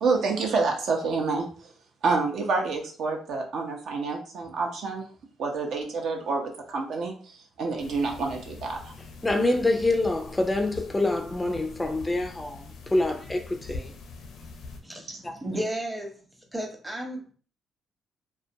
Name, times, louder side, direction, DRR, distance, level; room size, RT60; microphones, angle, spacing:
voice 1, 0.0-1.5 2.0-5.1 5.4-8.9 15.1-15.2, right 4 dB, 70° right, 0.6 m, -28 dB
sound 1, 7.8-14.8, left 3 dB, 80° left, 0.5 m, -43 dB
voice 2, 9.2-13.9 15.2-15.3, left 2 dB, 15° left, 0.3 m, -26 dB
voice 3, 14.8-16.2 16.5-17.3, right 1 dB, 10° right, 0.7 m, -33 dB
2.4 x 2.1 x 2.6 m
cardioid pair, 90°, 0 cm